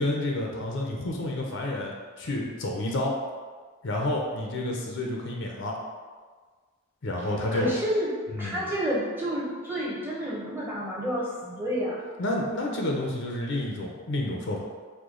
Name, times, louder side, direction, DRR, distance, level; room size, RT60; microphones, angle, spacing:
voice 1, 0.0-3.1 3.8-5.8 7.0-7.7 8.3-8.7 12.2-14.6, left 1 dB, 55° left, 0 dB, 0.6 m, -29 dB
voice 2, 7.5-8.1 8.4-12.0, equal, 10° right, -6 dB, 0.8 m, -29 dB
4.9 x 2.2 x 3.7 m, 1.5 s
head